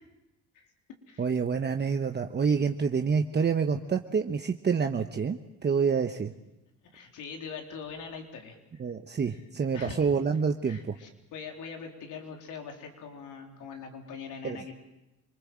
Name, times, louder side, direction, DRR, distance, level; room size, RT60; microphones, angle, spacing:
voice 1, 1.2-6.3 8.8-10.9 14.4-14.6, right 6 dB, 35° right, 6 dB, 1.2 m, -27 dB
voice 2, 6.8-8.6 9.3-9.4 9.7-10.0 10.6-14.8, left 5 dB, 85° left, 3 dB, 4.0 m, -42 dB
27.0 x 21.5 x 7.6 m, 0.96 s
cardioid pair, 90°, 30 cm